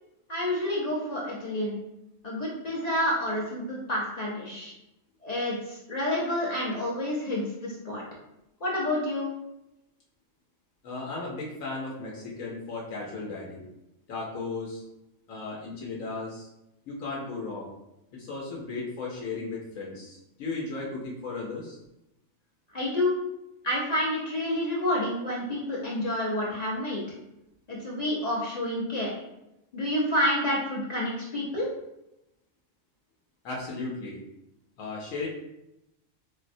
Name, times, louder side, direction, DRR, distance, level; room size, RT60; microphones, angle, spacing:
voice 1, 0.3-1.7 2.2-4.7 5.2-8.0 8.6-9.3 22.7-23.1 23.6-27.0 27.7-29.1 29.7-31.7, left 1 dB, 40° left, -5 dB, 0.6 m, -29 dB
voice 2, 10.8-13.6 14.1-14.8 15.3-16.5 16.9-17.7 18.1-21.8 33.4-34.2 34.8-35.3, left 3 dB, 75° left, -4 dB, 1.1 m, -35 dB
4.1 x 2.0 x 2.6 m, 0.89 s
omnidirectional pair, 1.4 m